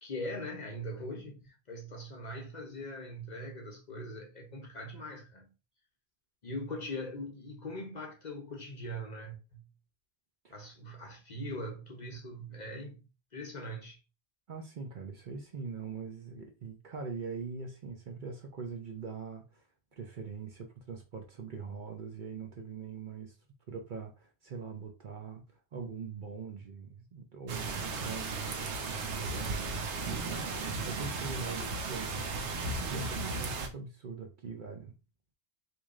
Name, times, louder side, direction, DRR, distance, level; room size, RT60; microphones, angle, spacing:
voice 1, 0.0-5.5 6.4-9.7 10.5-14.0, left 1 dB, 45° left, 0.8 m, -41 dB
voice 2, 14.5-19.6 20.0-23.3 23.7-34.9, right 5 dB, 50° right, 0.7 m, -42 dB
sound 1, 27.5-33.7, right 3 dB, 80° right, 1.0 m, -35 dB
3.1 x 2.7 x 3.5 m
omnidirectional pair, 1.2 m